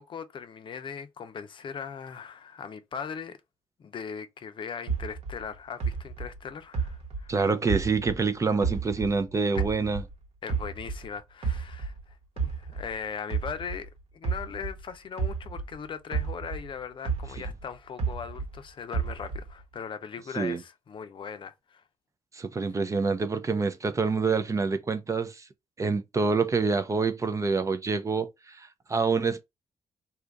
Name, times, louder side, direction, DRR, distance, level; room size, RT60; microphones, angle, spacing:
voice 1, 0.0-3.4 3.8-7.3 10.4-11.9 12.4-21.8, left 6 dB, 50° left, 0.5 m, -39 dB
sound 1, 4.9-8.3 8.6-11.1 11.4-15.8 16.1-18.6 18.9-19.6, right 5 dB, 65° right, 1.0 m, -32 dB
voice 2, 7.3-10.0 20.4-20.6 22.3-25.5 25.8-29.4, right 4 dB, 30° right, 0.5 m, -27 dB
2.7 x 2.5 x 3.3 m
cardioid pair, 100°, 11 cm